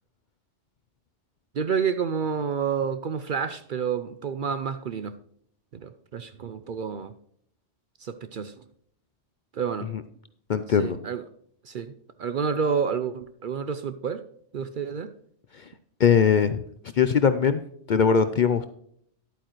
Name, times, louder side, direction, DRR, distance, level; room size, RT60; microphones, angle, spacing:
voice 1, 1.5-5.1 5.7-7.1 8.0-8.6 9.5-9.9 10.8-11.2 11.6-11.9 12.2-14.2 14.5-15.1, right 6 dB, 55° right, 11 dB, 0.6 m, -29 dB
voice 2, 10.5-11.0 15.6-15.7 16.0-16.6 17.0-17.6 17.9-18.7, left 7 dB, 55° left, 11 dB, 0.5 m, -21 dB
11.0 x 8.6 x 3.1 m, 0.66 s
omnidirectional pair, 1.2 m